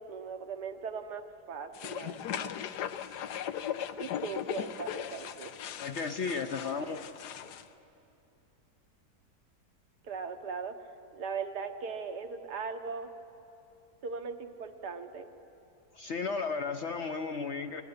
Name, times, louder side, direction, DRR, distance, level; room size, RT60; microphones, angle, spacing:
voice 1, 0.0-2.5 4.0-5.5 10.0-10.8 11.1-13.1 14.0-15.3, right 5 dB, 75° right, 6 dB, 1.6 m, -39 dB
sound 1, 1.7-7.6, left 9 dB, 80° left, 1.3 m, -38 dB
voice 2, 5.8-7.0 15.9-17.8, left 4 dB, 55° left, 6 dB, 0.8 m, -34 dB
24.0 x 19.5 x 8.1 m, 2.8 s
omnidirectional pair, 1.8 m